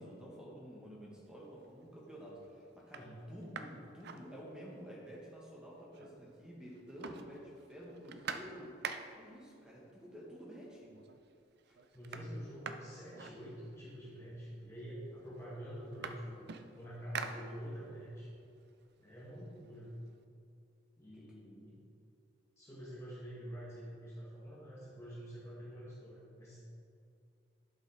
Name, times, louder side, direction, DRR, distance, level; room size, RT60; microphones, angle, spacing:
voice 1, 0.0-8.8 9.1-10.9 11.7-11.8 12.1-12.2, equal, 5° right, -5 dB, 1.4 m, -50 dB
sound 1, 1.4-1.9 2.4-2.5 2.8-4.9 5.2-5.3 5.5-6.4 6.7-9.4 10.3-10.4 10.8-11.3 11.6-14.0 14.8-14.9 15.2-18.0 18.4-20.1, right 6 dB, 55° right, 0.4 m, -47 dB
voice 2, 11.9-16.5 16.8-18.3 19.0-19.9 21.0-21.8 22.6-26.6, equal, 15° left, -6 dB, 1.2 m, -47 dB
11.5 x 5.4 x 3.6 m, 2.5 s
head